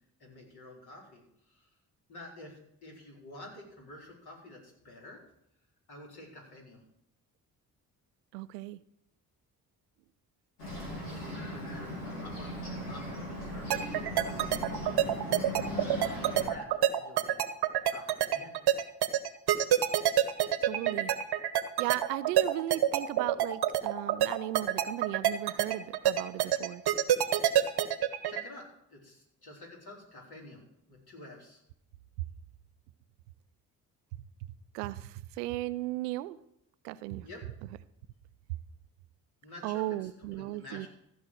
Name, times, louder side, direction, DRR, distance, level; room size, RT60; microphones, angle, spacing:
voice 1, 0.2-1.7 2.1-5.2 5.9-6.8 10.8-14.5 14.9-15.1 16.0-17.4 17.9-18.5 28.3-31.6 37.2-37.4 39.4-40.9, left 1 dB, 55° left, -2 dB, 4.3 m, -50 dB
voice 2, 8.3-8.8 20.6-21.1 21.8-26.8 34.7-36.4 36.8-37.3 39.6-40.9, right 16 dB, 85° right, 16 dB, 0.5 m, -36 dB
Bird, 10.6-16.5, left 1 dB, 90° left, 2.6 m, -38 dB
sound 1, 13.7-28.4, right 12 dB, 55° right, 1.0 m, -26 dB
15.0 x 5.5 x 6.3 m, 0.76 s
hypercardioid pair, 40°, 45 cm